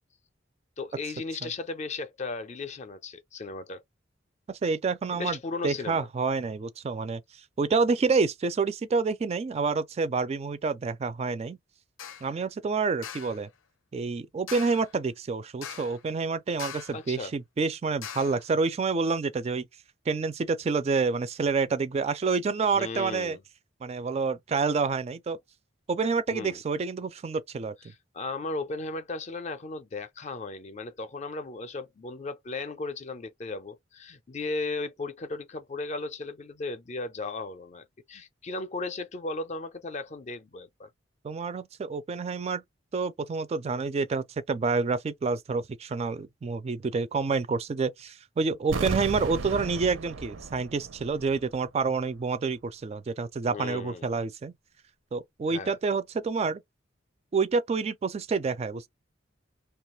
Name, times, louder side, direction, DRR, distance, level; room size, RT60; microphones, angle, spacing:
voice 1, 0.8-3.8 5.1-6.1 16.9-17.3 22.7-23.4 26.3-26.6 27.8-40.9 53.5-54.2 55.5-55.8, left 3 dB, 35° left, 0.4 m, -36 dB
voice 2, 4.5-5.4 5.6-7.2 7.6-11.6 12.2-13.5 13.9-19.7 20.1-23.4 23.8-25.4 25.9-27.7 41.2-42.6 42.9-54.5 55.1-56.6 57.3-58.9, right 4 dB, 35° right, 0.3 m, -28 dB
sound 1, 12.0-12.3 13.0-13.4 14.5-14.9 15.6-16.1 16.6-17.1 18.0-18.5, left 9 dB, 90° left, 0.5 m, -41 dB
sound 2, 48.7-51.6 51.8-51.9, right 3 dB, 80° right, 0.6 m, -35 dB
2.9 x 2.3 x 3.0 m
head